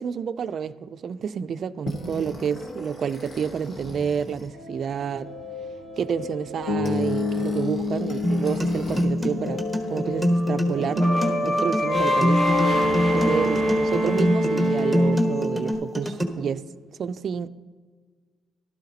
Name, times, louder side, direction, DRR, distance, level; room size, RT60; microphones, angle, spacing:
voice 1, 0.0-5.3 6.0-11.1 11.4-12.4 13.1-16.6 17.0-17.5, right 7 dB, 55° right, 0.4 m, -29 dB
sound 1, 1.9-9.0 9.3-15.7, equal, 45° left, 2.0 m, -27 dB
sound 2, 6.7-10.8, left 4 dB, 85° left, 1.4 m, -29 dB
sound 3, 8.2-16.2, left 1 dB, 5° left, 1.2 m, -25 dB
13.0 x 12.0 x 2.8 m
cardioid pair, 90°, 0 cm